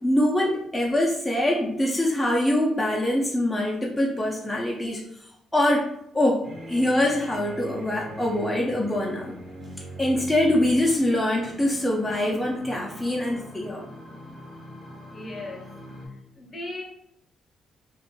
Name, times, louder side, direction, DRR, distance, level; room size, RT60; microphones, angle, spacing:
voice 1, 0.0-5.0 5.5-6.4 6.7-9.3 10.0-13.8, left 1 dB, 5° left, -4 dB, 0.4 m, -24 dB
sound 1, 6.4-16.1, equal, 20° right, 0.8 m, -41 dB
voice 2, 15.1-15.7 16.4-16.8, left 2 dB, 35° left, 0 dB, 0.7 m, -36 dB
2.5 x 2.1 x 3.0 m, 0.77 s
cardioid pair, 90°, 0 cm